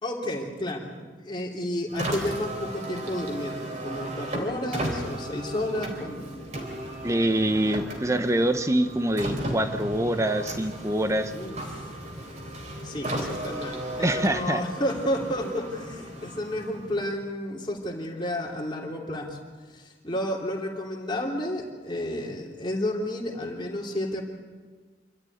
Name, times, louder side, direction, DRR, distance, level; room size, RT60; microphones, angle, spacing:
voice 1, 0.0-6.3 11.3-12.0 12.8-19.4 19.7-24.2, left 1 dB, 25° left, -1 dB, 3.2 m, -31 dB
Car, 1.9-17.3, right 1 dB, 40° right, 3.9 m, -35 dB
voice 2, 7.0-11.3 14.0-14.6, right 1 dB, 15° right, 9 dB, 1.0 m, -25 dB
27.0 x 13.5 x 9.5 m, 1.4 s
head